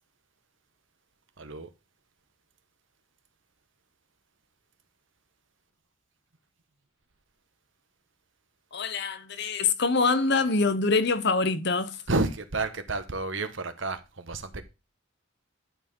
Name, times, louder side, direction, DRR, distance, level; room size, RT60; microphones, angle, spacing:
voice 1, 1.4-1.7 12.1-14.6, right 2 dB, 70° right, 1.4 m, -30 dB
voice 2, 8.7-12.0, left 4 dB, 60° left, 1.1 m, -25 dB
11.5 x 4.6 x 5.5 m
head